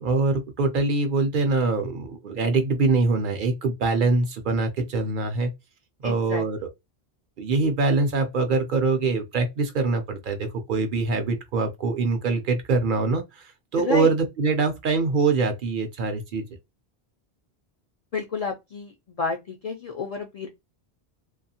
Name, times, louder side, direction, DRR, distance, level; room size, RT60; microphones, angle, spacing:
voice 1, 0.0-5.5 6.0-6.6 7.4-16.5, right 3 dB, 60° right, 0.6 m, -24 dB
voice 2, 6.0-6.4 13.8-14.1 18.1-20.5, left 4 dB, 60° left, 0.4 m, -30 dB
2.6 x 2.3 x 2.7 m
omnidirectional pair, 1.1 m